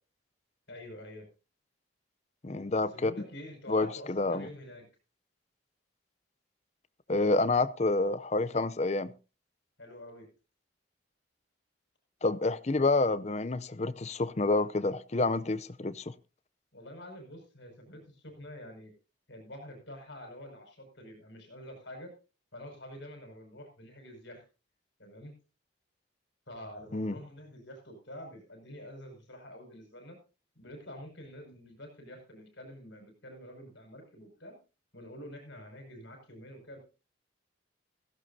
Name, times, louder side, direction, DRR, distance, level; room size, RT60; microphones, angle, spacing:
voice 1, 0.7-1.3 2.8-4.9 9.8-10.3 16.7-18.9 19.3-22.1 22.5-24.4 25.0-25.3 26.5-30.2 30.6-34.6 34.9-36.8, left 1 dB, 65° left, 5.5 m, -47 dB
voice 2, 2.4-3.1 3.7-4.5 7.1-9.1 12.2-16.1 26.9-27.1, left 3 dB, 35° left, 0.5 m, -28 dB
16.5 x 15.5 x 2.7 m
head